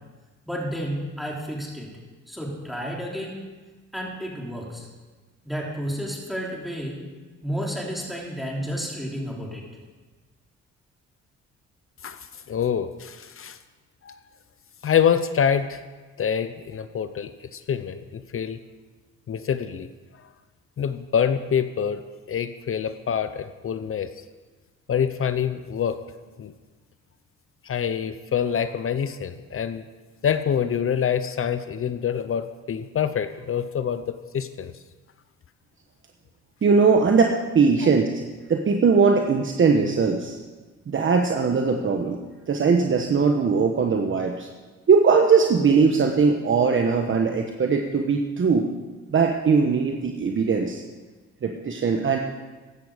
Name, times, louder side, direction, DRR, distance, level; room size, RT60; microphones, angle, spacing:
voice 1, 0.5-1.9 2.3-3.4 3.9-4.9 5.4-7.0 7.4-9.7, equal, ahead, -2 dB, 3.4 m, -31 dB
voice 2, 12.5-13.6 14.0-14.2 14.8-15.8 16.2-18.6 19.3-19.9 20.8-24.1 24.9-26.0 26.4-26.5 27.6-29.8 30.2-34.7, left 8 dB, 45° left, 11 dB, 0.7 m, -26 dB
voice 3, 36.6-38.2 38.5-40.4 40.9-42.2 42.5-44.5 44.9-48.7 49.1-50.8 51.4-52.2, right 5 dB, 40° right, 3 dB, 1.1 m, -20 dB
15.0 x 10.5 x 5.1 m, 1.3 s
cardioid pair, 90°, 30 cm